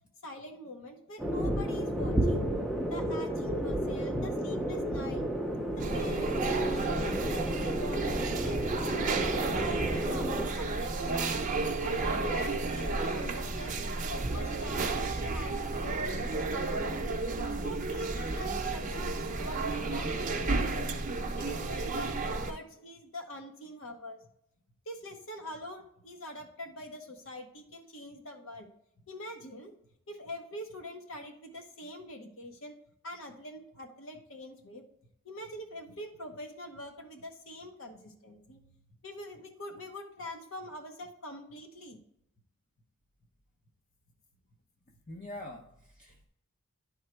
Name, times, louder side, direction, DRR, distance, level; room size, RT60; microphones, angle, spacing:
voice 1, 0.2-2.5 2.9-5.3 5.8-8.6 9.2-10.3 10.6-11.4 11.8-13.8 14.1-17.0 17.6-20.9 21.4-24.2 24.9-28.7 29.1-29.7 30.1-32.8 33.0-34.8 35.2-38.6 39.0-42.0, left 1 dB, 60° left, 3 dB, 1.1 m, -44 dB
Early Morning Azan as Heard from the Slopes of Mt. Merapi, 1.2-10.5, equal, ahead, 0.6 m, -32 dB
sound 1, 5.8-22.5, right 3 dB, 35° right, 0.7 m, -32 dB
voice 2, 45.1-46.3, left 1 dB, 35° left, -1 dB, 0.7 m, -44 dB
11.0 x 3.7 x 4.5 m, 0.75 s
head